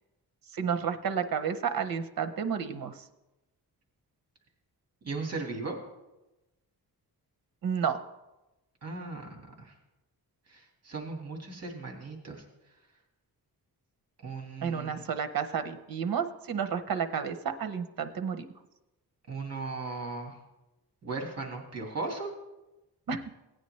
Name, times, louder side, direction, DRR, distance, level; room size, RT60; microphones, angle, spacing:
voice 1, 0.5-2.9 7.6-8.0 14.6-18.4 23.1-23.2, right 7 dB, 65° right, 9 dB, 0.8 m, -31 dB
voice 2, 5.0-5.8 8.8-9.7 10.5-12.4 14.2-15.0 19.3-20.4 21.0-22.3, right 3 dB, 40° right, 1 dB, 1.8 m, -37 dB
16.5 x 9.0 x 3.2 m, 1.0 s
wide cardioid pair, 160°, 38 cm